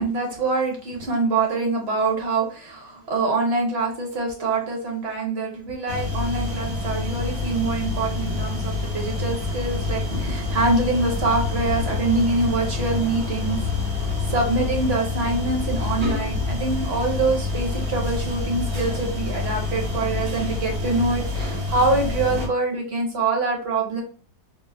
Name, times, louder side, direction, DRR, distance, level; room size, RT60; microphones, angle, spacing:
voice 1, 0.0-13.6 14.3-24.0, right 3 dB, 40° right, 1 dB, 1.0 m, -25 dB
sound 1, 5.9-22.5, left 3 dB, 90° right, 2.1 m, -27 dB
4.4 x 2.0 x 3.4 m, 0.41 s
omnidirectional pair, 2.1 m